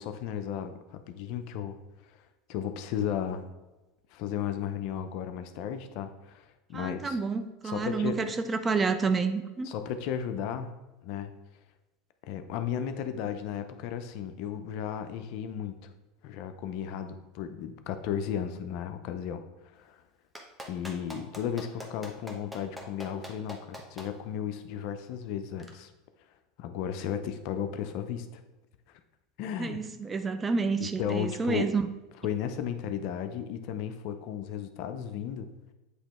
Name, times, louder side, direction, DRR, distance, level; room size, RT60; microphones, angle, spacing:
voice 1, 0.0-1.8 2.5-3.4 4.1-7.2 7.6-8.2 9.6-10.7 11.0-11.3 12.3-15.9 16.2-20.0 20.7-25.9 26.6-28.4 29.4-29.8 30.8-31.7 32.2-35.5, left 9 dB, 60° left, 9 dB, 0.6 m, -34 dB
voice 2, 6.7-9.7 29.6-31.9, right 4 dB, 20° right, 9 dB, 0.5 m, -29 dB
Clapping, 20.3-24.1 25.6-25.7, equal, ahead, 1.1 m, -42 dB
8.1 x 3.0 x 4.3 m, 1.1 s
supercardioid pair, 105°, 0 cm